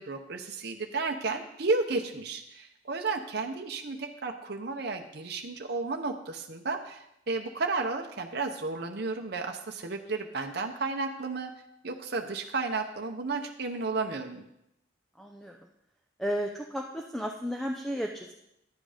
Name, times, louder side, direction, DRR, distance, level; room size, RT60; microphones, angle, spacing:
voice 1, 0.0-11.5 11.8-14.4, right 3 dB, 55° right, 3 dB, 0.8 m, -33 dB
voice 2, 15.2-15.5 16.2-18.3, equal, ahead, 2 dB, 0.5 m, -33 dB
10.5 x 7.7 x 5.0 m, 0.81 s
head